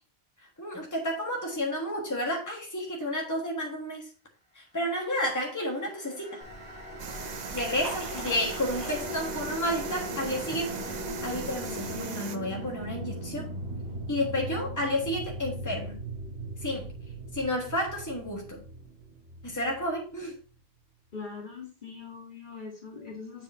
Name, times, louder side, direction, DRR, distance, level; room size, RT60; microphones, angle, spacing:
voice 1, 0.6-4.1 4.5-6.4 7.5-10.8 11.2-13.5 14.1-16.0 16.6-16.9 17.3-18.6 19.4-20.3, left 1 dB, 15° left, 1.5 m, -31 dB
sound 1, 5.4-20.6, right 1 dB, 65° right, 2.0 m, -39 dB
Liquid, 6.4-12.0, right 1 dB, 25° right, 2.9 m, -44 dB
sound 2, 7.0-12.4, right 6 dB, 50° right, 0.7 m, -40 dB
voice 2, 21.1-23.4, left 4 dB, 50° left, 1.6 m, -42 dB
7.3 x 6.7 x 2.7 m
omnidirectional pair, 1.1 m